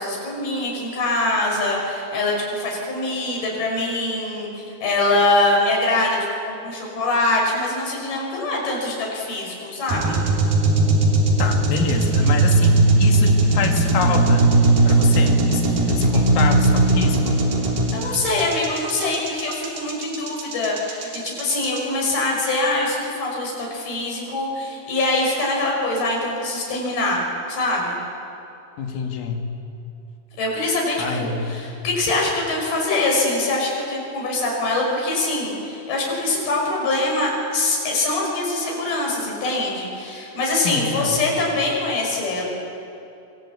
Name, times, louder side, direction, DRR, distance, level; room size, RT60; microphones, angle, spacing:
voice 1, 0.0-6.2 6.5-10.2 17.9-27.2 27.5-28.0 30.4-42.4, left 2 dB, 45° left, -1 dB, 7.6 m, -23 dB
sound 1, 9.9-21.8, right 2 dB, 50° right, 4.3 m, -18 dB
voice 2, 11.4-14.5 14.8-17.4 28.8-29.5 31.0-31.5 40.6-41.2, left 5 dB, 75° left, 3 dB, 4.8 m, -26 dB
26.0 x 25.0 x 8.6 m, 2.7 s
omnidirectional pair, 6.0 m